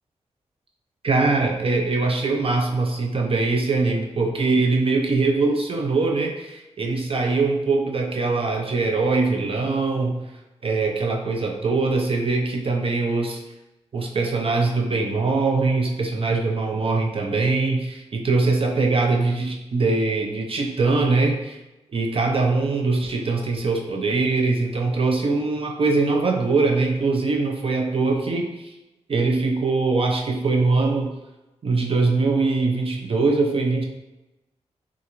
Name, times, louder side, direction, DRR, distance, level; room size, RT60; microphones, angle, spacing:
voice 1, 1.0-10.2 10.6-13.4 13.9-21.6 21.9-28.7 29.1-31.2 31.6-33.8, right 3 dB, 50° right, 1 dB, 0.5 m, -22 dB
3.8 x 2.4 x 2.9 m, 1.0 s
cardioid pair, 55°, 12 cm